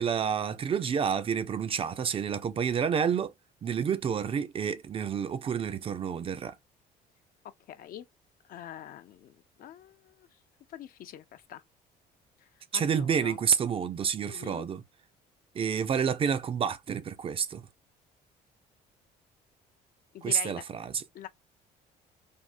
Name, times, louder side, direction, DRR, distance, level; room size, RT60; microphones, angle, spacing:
voice 1, 0.0-3.3 3.6-6.6 12.7-14.8 15.5-17.6 20.2-21.0, right 7 dB, 35° right, 0.4 m, -29 dB
voice 2, 7.7-8.1 8.5-9.3 9.6-10.3 10.7-11.6 12.4-13.4 14.2-14.6 20.1-20.6 21.1-21.3, left 11 dB, 60° left, 0.4 m, -45 dB
3.4 x 2.1 x 2.5 m
cardioid pair, 110°, 17 cm